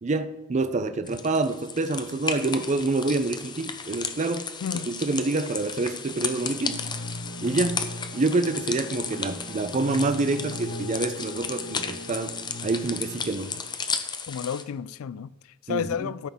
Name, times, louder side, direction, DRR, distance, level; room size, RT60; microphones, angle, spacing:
voice 1, 0.0-4.5 4.9-6.8 7.4-7.8 8.1-12.4 12.6-13.5 15.7-16.1, right 3 dB, 35° right, 0.4 m, -27 dB
sound 1, 1.1-14.6, left 6 dB, 20° left, 0.5 m, -34 dB
voice 2, 4.6-4.9 14.3-16.3, left 7 dB, 75° left, 0.4 m, -32 dB
sound 2, 6.1-13.6, left 1 dB, 45° left, 0.9 m, -39 dB
13.0 x 6.0 x 3.6 m
head